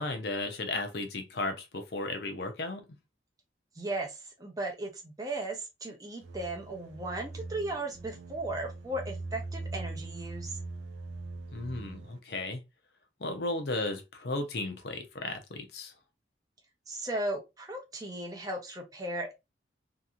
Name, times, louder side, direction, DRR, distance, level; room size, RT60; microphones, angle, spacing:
voice 1, 0.0-2.8 11.5-12.6 13.2-15.9, left 2 dB, 60° left, 0.6 m, -35 dB
voice 2, 3.8-10.6 16.9-19.3, right 2 dB, 20° right, 0.6 m, -36 dB
sound 1, 6.2-12.2, right 3 dB, 75° right, 0.6 m, -41 dB
2.8 x 2.6 x 2.4 m
head